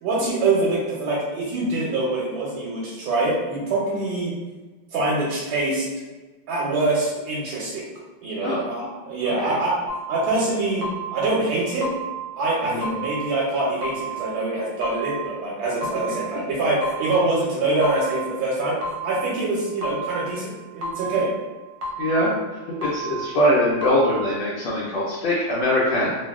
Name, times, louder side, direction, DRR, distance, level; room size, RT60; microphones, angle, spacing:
voice 1, 0.0-4.3 4.9-5.8 6.5-7.8 8.2-9.8 10.1-10.8 11.1-11.9 12.4-21.3, right 2 dB, 90° right, -5 dB, 1.4 m, -24 dB
voice 2, 9.2-9.6 12.6-12.8 22.0-22.4 22.8-26.2, left 1 dB, 80° left, -6 dB, 1.4 m, -22 dB
sound 1, 9.9-10.4 10.8-11.4 11.8-12.4 12.8-13.4 13.8-14.4 14.8-15.4 15.8-16.4 16.8-17.4 17.8-18.4 18.8-19.4 19.8-20.4 20.8-21.4 21.8-22.4 22.8-23.4 23.8-24.4, right 3 dB, 65° right, 0.9 m, -32 dB
3.4 x 2.2 x 2.3 m, 1.2 s
omnidirectional pair, 2.1 m